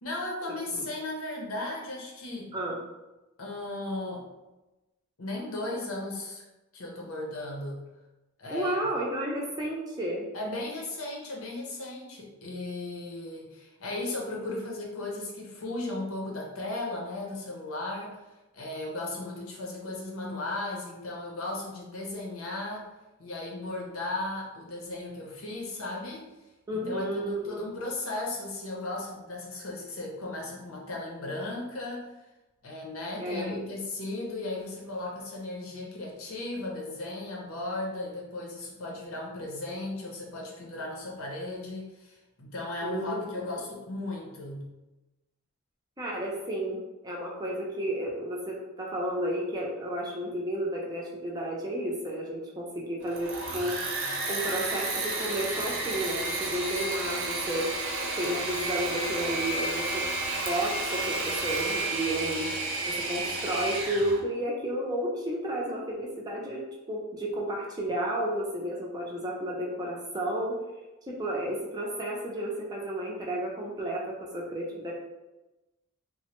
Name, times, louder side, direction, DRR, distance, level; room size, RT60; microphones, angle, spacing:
voice 1, 0.0-2.5 3.4-4.3 5.2-6.4 6.7-7.8 8.4-8.9 10.3-18.2 18.5-22.9 23.2-26.3 26.7-32.1 32.6-44.7, left 2 dB, 85° left, -1 dB, 0.7 m, -36 dB
voice 2, 8.5-10.3 26.7-27.6 33.2-33.6 42.8-43.4 46.0-53.7 54.3-57.7 58.2-60.0 60.3-62.5 62.9-66.6 66.9-70.6 71.1-74.9, right 1 dB, 20° right, -3 dB, 0.4 m, -32 dB
Engine / Mechanisms, 53.0-64.2, right 2 dB, 70° right, 0.6 m, -31 dB
3.1 x 2.1 x 2.9 m, 1.0 s
head